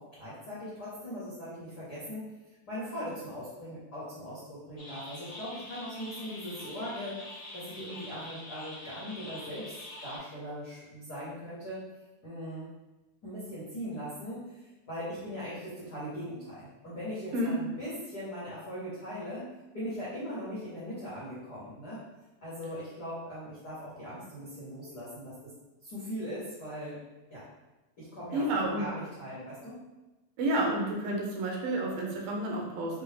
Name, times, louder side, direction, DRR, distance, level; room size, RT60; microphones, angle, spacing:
voice 1, 0.0-2.2 2.7-7.1 7.5-9.7 10.0-11.8 12.2-12.7 13.2-19.5 19.7-22.0 22.4-25.3 25.8-27.0 27.3-27.5 28.0-29.8, equal, 80° left, -10 dB, 0.8 m, -40 dB
sound 1, 4.8-10.2, left 1 dB, 45° left, 1.2 m, -45 dB
voice 2, 28.3-28.8 30.4-33.0, right 1 dB, 90° right, -1 dB, 2.5 m, -30 dB
6.0 x 2.1 x 3.3 m, 1.1 s
omnidirectional pair, 3.8 m